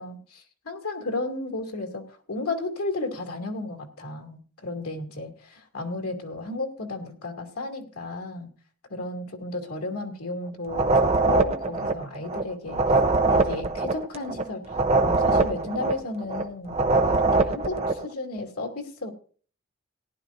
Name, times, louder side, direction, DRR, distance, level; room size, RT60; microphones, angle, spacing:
voice 1, 0.0-8.5 8.9-12.8 13.3-19.1, left 2 dB, 90° left, 2 dB, 2.6 m, -33 dB
sound 1, 10.7-18.0, right 3 dB, 30° right, 0.7 m, -23 dB
18.0 x 11.0 x 2.6 m, 0.43 s
head